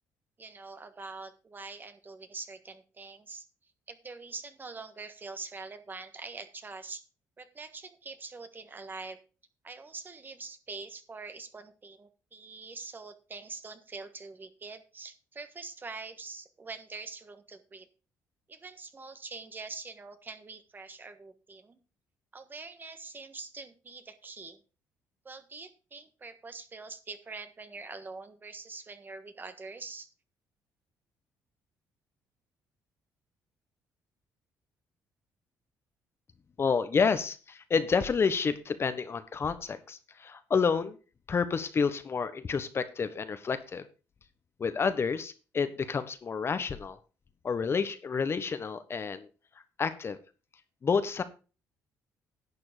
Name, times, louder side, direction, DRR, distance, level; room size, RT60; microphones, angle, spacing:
voice 1, 0.4-3.4 3.9-7.0 7.4-9.2 9.6-17.9 18.5-21.8 22.3-24.6 25.2-30.1, right 4 dB, 30° right, 10 dB, 1.4 m, -44 dB
voice 2, 36.6-41.0 41.3-43.9 44.6-47.0 47.4-49.3 49.8-50.2 50.8-51.2, left 5 dB, 40° left, 11 dB, 1.2 m, -29 dB
11.0 x 6.9 x 5.1 m, 0.34 s
cardioid pair, 90°, 7 cm